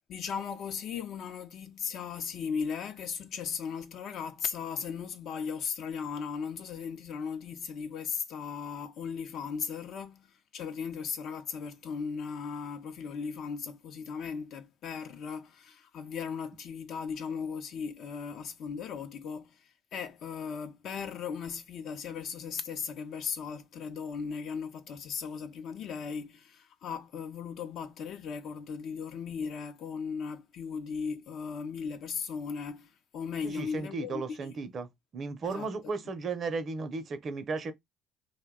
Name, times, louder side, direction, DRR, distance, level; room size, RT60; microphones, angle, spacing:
voice 1, 0.1-19.6 19.9-34.6 35.4-35.7, left 6 dB, 60° left, 0.6 m, -37 dB
voice 2, 33.4-37.7, right 4 dB, 45° right, 0.6 m, -35 dB
2.6 x 2.1 x 3.6 m
supercardioid pair, 80°, 0 cm